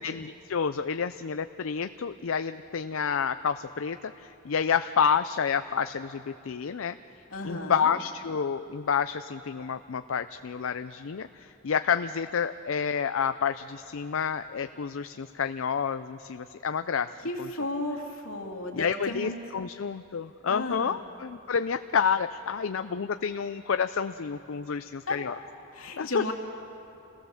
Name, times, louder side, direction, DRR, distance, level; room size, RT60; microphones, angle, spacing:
voice 1, 0.0-7.0 7.4-17.1 17.4-17.5 18.7-25.3 26.0-26.3, left 6 dB, 70° left, 10 dB, 0.5 m, -29 dB
voice 2, 7.3-7.9 17.2-19.4 20.5-21.0 24.7-24.8 25.1-25.3 25.7-26.3, left 2 dB, 85° left, 1 dB, 2.6 m, -34 dB
27.5 x 18.0 x 7.1 m, 2.9 s
head